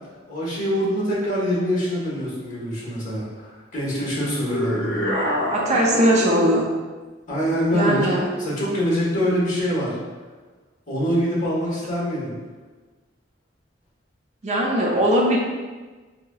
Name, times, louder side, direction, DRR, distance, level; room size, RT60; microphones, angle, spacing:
voice 1, 0.3-5.0 7.3-10.0 10.9-12.3, equal, 40° left, -6 dB, 1.2 m, -24 dB
sound 1, 4.4-6.7, equal, 60° left, 0.6 m, -26 dB
voice 2, 5.5-6.6 7.7-8.2 14.4-15.4, right 1 dB, 35° right, -2 dB, 0.4 m, -19 dB
3.9 x 2.7 x 2.3 m, 1.3 s
head